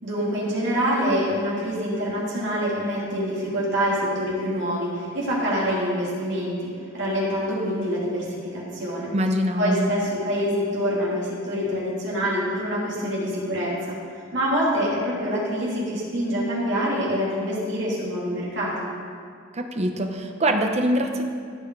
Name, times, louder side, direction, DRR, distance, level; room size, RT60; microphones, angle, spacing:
voice 1, 0.0-9.1 9.6-14.0 14.3-18.9, equal, 60° right, -6 dB, 2.9 m, -26 dB
voice 2, 9.1-9.9 19.5-21.3, equal, 30° right, 4 dB, 0.8 m, -23 dB
16.0 x 5.6 x 4.6 m, 2.2 s
head